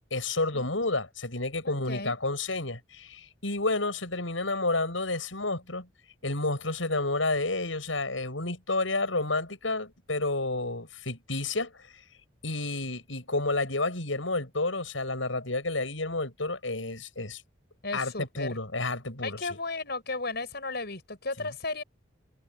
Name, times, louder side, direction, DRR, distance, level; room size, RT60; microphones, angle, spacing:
voice 1, 0.1-5.9 6.2-11.7 12.4-17.4 17.9-19.4 21.4-21.5, left 2 dB, 90° left, 8.0 m, -30 dB
voice 2, 1.6-2.1 17.8-18.6 19.2-21.8, left 3 dB, 55° left, 6.9 m, -35 dB
head